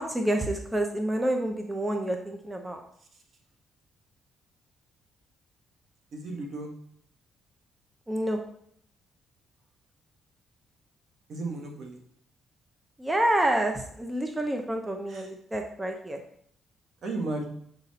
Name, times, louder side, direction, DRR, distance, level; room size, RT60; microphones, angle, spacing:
voice 1, 0.0-2.8 8.1-8.4 13.0-16.2, right 1 dB, 15° right, 3 dB, 0.8 m, -28 dB
voice 2, 6.1-6.7 11.3-12.0 15.1-15.3 17.0-17.5, right 2 dB, 60° right, 2 dB, 1.5 m, -34 dB
7.9 x 4.2 x 4.1 m, 0.66 s
cardioid pair, 90°, 0 cm